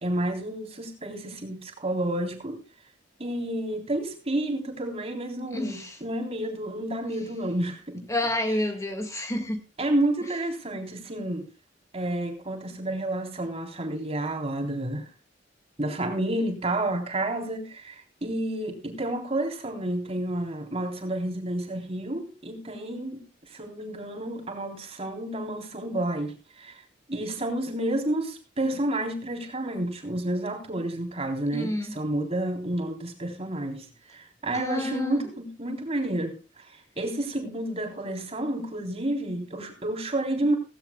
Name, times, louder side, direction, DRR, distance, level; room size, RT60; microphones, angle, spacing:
voice 1, 0.0-2.6 3.2-8.1 9.8-11.5 11.9-15.1 15.8-26.8 27.1-40.6, right 1 dB, 35° right, 3.7 m, -30 dB
voice 2, 5.5-6.0 8.1-9.6 10.2-10.3 31.5-31.9 34.5-35.3, left 1 dB, 15° left, 1.8 m, -29 dB
17.0 x 16.0 x 2.3 m
head